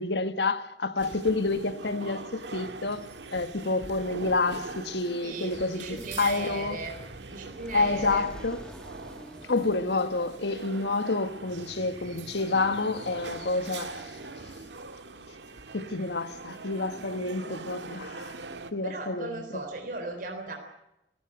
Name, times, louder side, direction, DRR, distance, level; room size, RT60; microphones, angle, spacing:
voice 1, 0.0-6.8 7.7-8.6 9.5-14.1 15.7-18.3 18.7-19.4, left 3 dB, 70° left, 1.6 m, -29 dB
sound 1, 1.0-18.7, right 3 dB, 90° right, 1.7 m, -42 dB
voice 2, 5.2-7.0 7.3-8.3 18.2-18.3 18.8-20.5, right 3 dB, 50° right, 4.0 m, -37 dB
sound 2, 5.5-15.0, equal, 5° left, 1.5 m, -49 dB
29.5 x 14.0 x 7.9 m
head